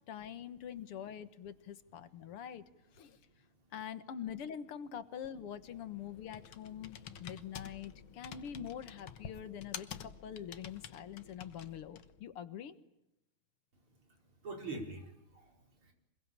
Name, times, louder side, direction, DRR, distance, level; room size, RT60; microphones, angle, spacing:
voice 1, 0.1-2.6 3.0-3.2 3.7-12.7, left 9 dB, 90° left, 12 dB, 2.3 m, -45 dB
voice 2, 2.4-2.8 7.6-7.9 14.1-15.9, right 2 dB, 70° right, 3 dB, 5.7 m, -46 dB
Computer keyboard, 5.2-12.2, left 8 dB, 70° left, 2.0 m, -50 dB
26.0 x 22.0 x 8.8 m, 0.88 s
omnidirectional pair, 2.4 m